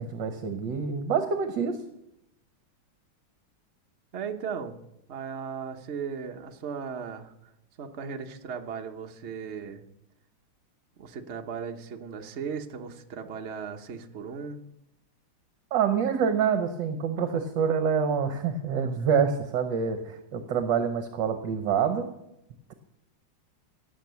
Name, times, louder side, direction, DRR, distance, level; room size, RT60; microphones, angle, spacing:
voice 1, 0.0-1.8 15.7-22.1, right 6 dB, 65° right, 7 dB, 1.6 m, -26 dB
voice 2, 4.1-4.8 5.1-7.5 7.8-9.8 11.0-14.6, right 6 dB, 40° right, 4 dB, 1.1 m, -37 dB
17.0 x 7.6 x 6.9 m, 0.83 s
omnidirectional pair, 2.3 m